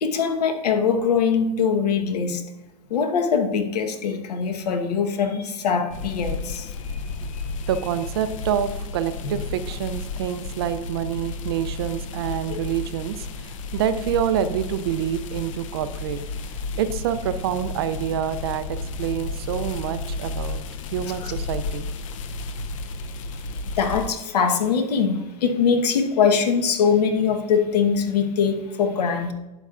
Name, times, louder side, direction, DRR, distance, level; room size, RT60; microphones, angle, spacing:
voice 1, 0.0-2.4 2.9-6.7 9.2-9.4 12.5-12.6 21.2-21.3 23.8-29.3, left 6 dB, 75° left, 6 dB, 1.1 m, -22 dB
sound 1, 5.9-24.1, left 4 dB, 50° left, 0.6 m, -33 dB
voice 2, 7.7-16.2 16.8-20.6 20.9-21.9, right 9 dB, 40° right, 12 dB, 0.4 m, -27 dB
11.5 x 7.9 x 2.4 m, 1.0 s
supercardioid pair, 175°, 21 cm